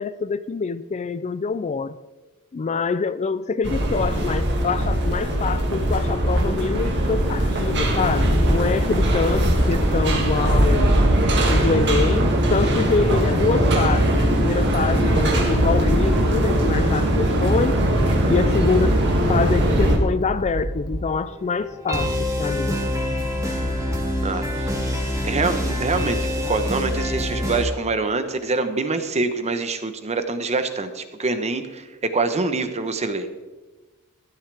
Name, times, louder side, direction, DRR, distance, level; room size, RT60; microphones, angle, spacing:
voice 1, 0.0-1.9 2.5-11.0 11.5-17.8 18.3-19.0 19.3-22.8, left 4 dB, 30° left, 14 dB, 0.4 m, -25 dB
sound 1, 3.6-20.0, right 1 dB, 55° right, 2.3 m, -20 dB
sound 2, 9.0-21.0, equal, 75° right, 2.1 m, -29 dB
sound 3, 19.8-20.5 21.0-27.7, left 1 dB, 15° right, 2.4 m, -26 dB
voice 2, 24.2-24.7 25.2-26.2 26.5-33.3, right 3 dB, 30° right, 9 dB, 1.0 m, -25 dB
15.0 x 12.5 x 3.5 m, 1.2 s
head